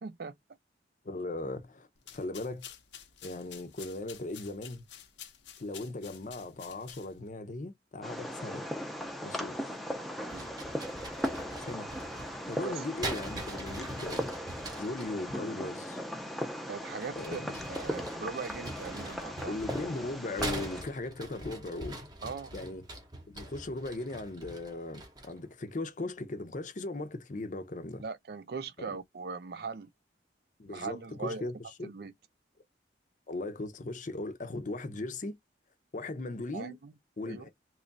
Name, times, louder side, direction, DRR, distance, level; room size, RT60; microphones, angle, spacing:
voice 1, 0.0-0.3 10.3-10.5 12.6-12.7 16.7-19.6 22.2-22.5 28.0-29.9 30.7-31.4 31.8-32.1 36.5-36.9 37.3-37.4, right 4 dB, 60° right, 0.4 m, -40 dB
voice 2, 1.0-2.7 3.2-4.8 5.6-8.7 9.2-9.8 11.7-11.9 12.4-14.2 14.8-16.0 17.2-17.9 19.5-22.1 22.5-22.9 23.3-28.0 28.8-28.9 30.6-31.9 33.3-35.4 35.9-36.8 37.2-37.5, left 2 dB, 45° left, 0.6 m, -38 dB
sound 1, 2.0-7.3, left 9 dB, 85° left, 0.8 m, -50 dB
Fireworks, 8.0-20.8, equal, ahead, 0.5 m, -38 dB
sound 2, 10.3-15.1 16.9-25.4, right 1 dB, 25° right, 0.8 m, -43 dB
3.0 x 2.4 x 3.8 m
head